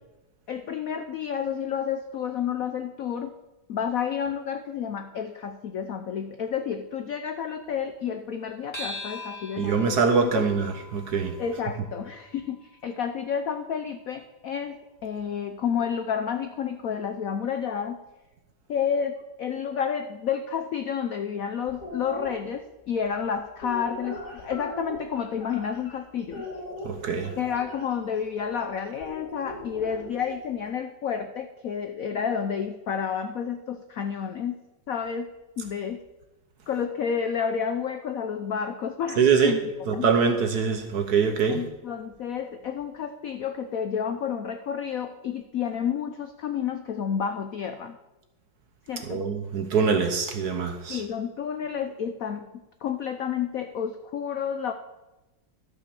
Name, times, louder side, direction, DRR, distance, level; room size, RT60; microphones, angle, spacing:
voice 1, 0.5-3.3 3.7-10.4 11.4-18.0 18.7-26.5 27.4-34.6 34.9-35.3 35.6-36.0 36.7-40.1 41.5-48.0 48.9-49.2 50.9-52.4 52.8-54.7, left 7 dB, 80° left, 8 dB, 0.7 m, -30 dB
sound 1, 8.7-13.5, left 1 dB, 15° left, 1.8 m, -42 dB
voice 2, 9.6-11.4 26.8-27.3 39.2-39.6 39.9-41.6 49.1-51.0, right 5 dB, 60° right, 6 dB, 1.2 m, -23 dB
sound 2, 21.7-22.3 23.1-26.0 26.3-27.8 29.0-30.4, left 1 dB, 50° left, 2.8 m, -39 dB
13.0 x 5.9 x 6.8 m, 1.0 s
omnidirectional pair, 2.3 m